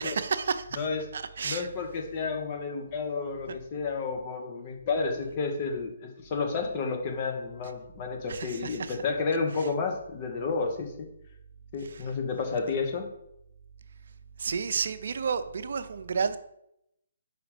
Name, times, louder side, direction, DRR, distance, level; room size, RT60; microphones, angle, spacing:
voice 1, 0.0-0.8 1.1-1.7 8.3-9.0 11.8-12.0 14.4-16.4, right 5 dB, 65° right, 11 dB, 0.5 m, -31 dB
voice 2, 1.4-11.1 11.7-13.1, left 4 dB, 35° left, 3 dB, 1.2 m, -31 dB
5.0 x 4.9 x 5.1 m, 0.78 s
hypercardioid pair, 150°, 0 cm